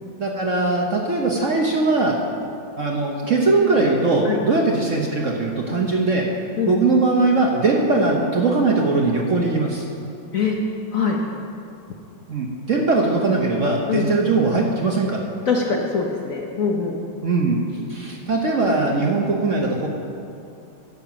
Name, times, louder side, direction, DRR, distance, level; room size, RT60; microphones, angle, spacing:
voice 1, 0.2-2.2 2.8-6.3 6.7-9.9 12.3-15.2 17.2-17.6 17.9-19.9, right 3 dB, 55° right, 0 dB, 1.0 m, -20 dB
voice 2, 15.5-17.0, left 5 dB, 60° left, 0 dB, 0.9 m, -22 dB
11.5 x 5.2 x 7.4 m, 2.5 s
omnidirectional pair, 2.1 m